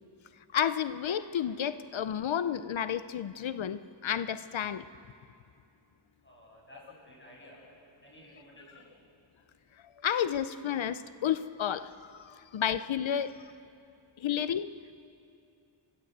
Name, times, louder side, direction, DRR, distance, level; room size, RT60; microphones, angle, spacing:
voice 1, 0.5-4.8 10.0-13.3 14.2-14.7, left 9 dB, 75° left, 13 dB, 0.7 m, -31 dB
voice 2, 6.2-7.7 8.0-8.9, equal, 25° left, -4 dB, 7.1 m, -54 dB
30.0 x 13.5 x 8.0 m, 2.6 s
wide cardioid pair, 100°, 47 cm